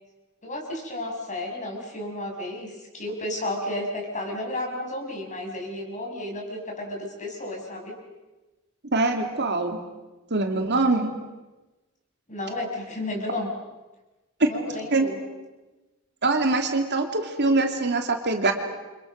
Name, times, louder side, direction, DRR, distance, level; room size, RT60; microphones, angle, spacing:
voice 1, 0.4-7.9 12.3-13.5 14.5-15.2, left 1 dB, 35° left, 1 dB, 6.7 m, -32 dB
voice 2, 8.9-9.8 10.3-11.1 14.4-14.5 14.9-15.1 16.2-18.5, right 3 dB, 50° right, 4 dB, 2.9 m, -23 dB
29.5 x 26.0 x 6.6 m, 1.1 s
head